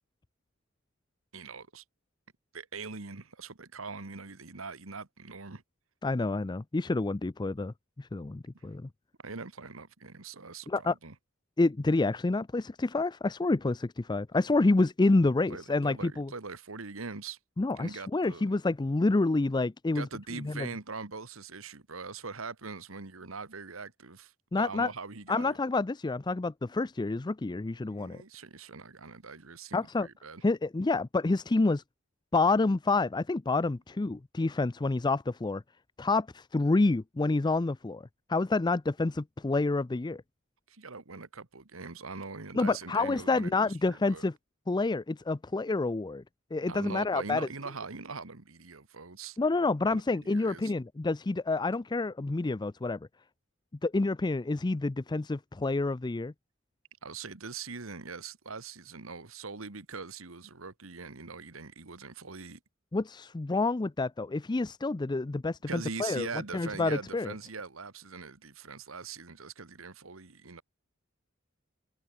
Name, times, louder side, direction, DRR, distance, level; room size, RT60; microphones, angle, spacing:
voice 1, 1.3-1.8 2.5-5.6 8.5-8.6 9.2-11.2 15.5-17.4 17.7-18.4 19.9-25.6 27.8-30.4 40.7-44.3 46.7-49.4 49.9-50.7 57.0-62.6 65.7-70.6, right 4 dB, 85° right, 1.7 m, -42 dB
voice 2, 6.0-8.9 10.7-10.9 11.6-16.3 17.6-20.1 20.4-20.7 24.5-24.9 25.3-28.2 29.7-30.1 30.4-31.8 32.3-35.6 36.0-38.0 38.3-40.2 42.5-44.3 44.7-46.2 46.5-47.5 49.4-53.0 53.8-56.3 62.9-66.3 66.5-67.3, left 3 dB, 20° left, 0.4 m, -28 dB
head